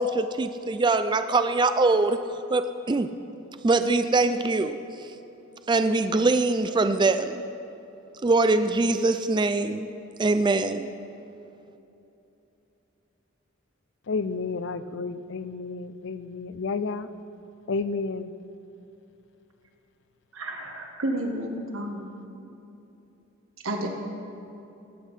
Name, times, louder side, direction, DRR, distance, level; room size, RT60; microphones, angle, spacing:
voice 1, 0.0-2.2 2.5-3.1 3.6-5.1 5.7-7.4 8.2-9.9 10.2-10.9, right 3 dB, 20° right, 10 dB, 0.4 m, -23 dB
voice 2, 14.1-17.1 17.7-18.3, left 4 dB, 65° left, 13 dB, 0.6 m, -31 dB
voice 3, 20.3-22.1 23.6-23.9, right 1 dB, 80° right, 2 dB, 1.7 m, -31 dB
18.5 x 8.3 x 5.6 m, 2.9 s
head